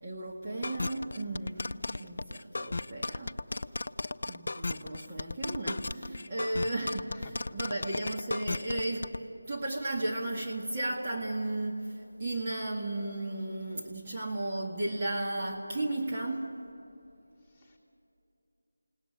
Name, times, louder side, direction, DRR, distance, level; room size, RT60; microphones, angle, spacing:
voice 1, 0.0-3.4 4.2-9.1 9.4-11.9 12.2-16.6, right 2 dB, 25° right, -2 dB, 1.9 m, -34 dB
sound 1, 0.6-9.2, left 2 dB, 55° left, 0.6 m, -35 dB
voice 2, 6.4-6.7 7.1-7.9 17.5-17.8, left 3 dB, 10° left, -5 dB, 2.7 m, -53 dB
29.5 x 18.0 x 9.6 m, 2.8 s
figure-of-eight pair, 170°, 0 cm